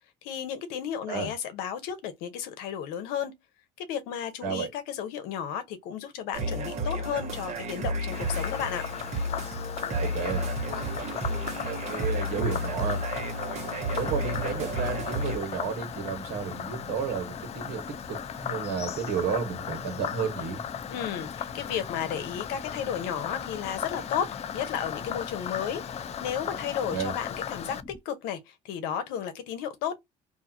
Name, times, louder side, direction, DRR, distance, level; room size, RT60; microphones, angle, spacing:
voice 1, 0.2-3.3 3.8-8.8 20.9-27.8 28.0-30.0, left 9 dB, 80° left, 0.8 m, -33 dB
sound 1, 6.3-15.4, right 1 dB, 45° right, 1.1 m, -32 dB
Frog, 8.1-27.8, left 9 dB, 45° left, 0.4 m, -37 dB
voice 2, 10.0-13.0 13.9-20.6 26.9-27.1, right 6 dB, 75° right, 1.3 m, -32 dB
sound 2, 13.9-28.0, left 3 dB, 20° left, 1.0 m, -45 dB
2.7 x 2.3 x 2.8 m
supercardioid pair, 80°, 16 cm